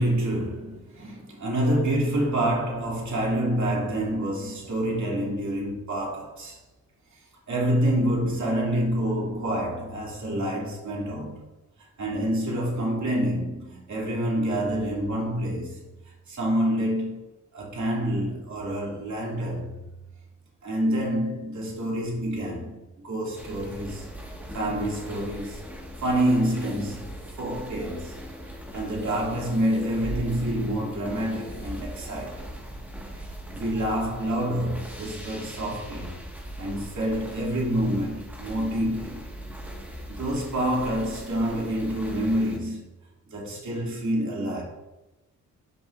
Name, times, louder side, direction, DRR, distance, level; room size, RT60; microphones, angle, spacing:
voice 1, 0.0-6.6 7.1-7.2 7.5-11.4 11.8-15.8 16.3-19.8 20.6-24.1 24.5-25.6 26.0-28.2 28.7-32.5 33.5-36.3 36.6-39.3 40.1-42.9 43.3-44.6, right 1 dB, 55° right, 2.6 m, -27 dB
sound 1, 23.4-42.6, equal, 5° right, 1.5 m, -40 dB
10.5 x 5.2 x 2.5 m
cardioid pair, 75°, 34 cm